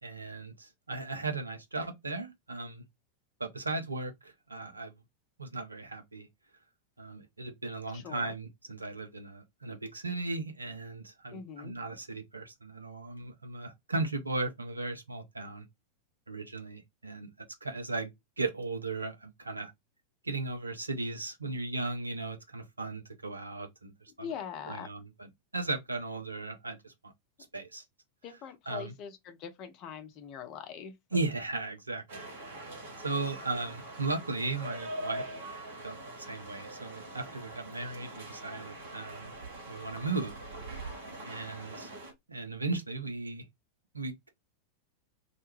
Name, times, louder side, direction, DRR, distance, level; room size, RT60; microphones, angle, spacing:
voice 1, 0.0-2.8 3.4-4.9 5.4-6.3 7.0-15.7 16.3-19.7 20.2-24.3 24.7-27.1 27.5-27.8 28.7-28.9 31.1-32.3 32.6-35.2 35.8-39.3 39.7-40.4 41.2-41.9 42.3-43.4 43.9-44.3, right 3 dB, 80° right, 0.5 m, -37 dB
voice 2, 7.9-8.3 11.3-11.7 24.2-24.9 28.2-30.9, left 8 dB, 40° left, 0.5 m, -42 dB
sound 1, 32.1-42.1, right 1 dB, 60° right, 1.2 m, -43 dB
2.3 x 2.2 x 3.0 m
figure-of-eight pair, 90°, 0 cm